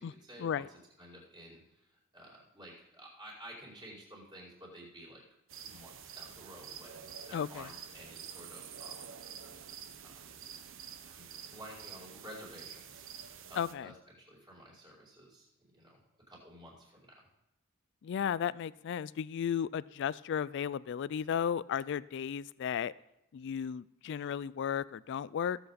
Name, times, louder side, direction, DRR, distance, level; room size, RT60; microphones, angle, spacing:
voice 1, 0.0-5.2 5.6-9.1 10.0-10.4 11.0-11.3 11.5-16.0 16.3-17.1, equal, 20° right, -5 dB, 4.9 m, -52 dB
sound 1, 5.5-13.7, right 8 dB, 65° right, 0.9 m, -48 dB
voice 2, 7.3-7.6 13.6-13.9 18.0-22.9 23.3-25.6, left 8 dB, 60° left, 20 dB, 0.3 m, -34 dB
17.5 x 8.1 x 4.2 m, 0.86 s
head